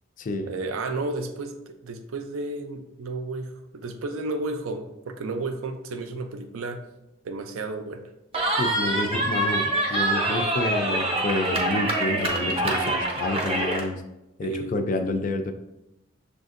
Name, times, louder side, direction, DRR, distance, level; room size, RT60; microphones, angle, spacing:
voice 1, 0.5-6.8 7.2-8.1 14.4-14.8, right 2 dB, 80° right, 7 dB, 0.4 m, -32 dB
Cheering, 8.3-13.9, right 1 dB, 25° right, 0.6 m, -25 dB
voice 2, 8.6-14.0 14.4-15.5, left 2 dB, 40° left, 7 dB, 0.3 m, -29 dB
6.3 x 2.5 x 2.5 m, 0.91 s
head